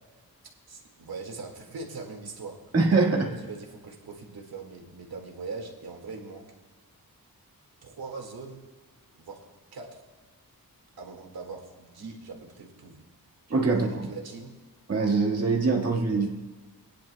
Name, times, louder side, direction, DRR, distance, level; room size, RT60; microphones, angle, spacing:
voice 1, 0.7-2.6 3.1-6.4 7.8-8.6 9.1-9.5 9.7-10.0 11.0-13.0 13.7-14.5, right 4 dB, 85° right, 2 dB, 2.0 m, -41 dB
voice 2, 2.7-3.3 13.5-14.1 14.9-16.3, right 3 dB, 45° right, 1 dB, 1.7 m, -23 dB
20.0 x 10.5 x 2.3 m, 1.3 s
wide cardioid pair, 140°, 36 cm